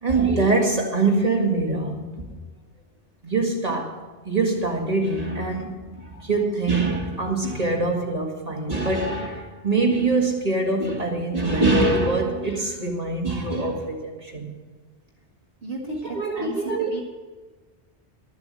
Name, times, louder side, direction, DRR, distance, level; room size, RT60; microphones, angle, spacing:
voice 1, 0.0-2.3 3.2-4.0 4.3-14.5 15.9-16.9, right 3 dB, 35° right, 1 dB, 1.9 m, -24 dB
voice 2, 15.6-17.0, right 2 dB, 60° right, -1 dB, 1.7 m, -34 dB
12.5 x 7.6 x 7.6 m, 1.3 s
omnidirectional pair, 1.2 m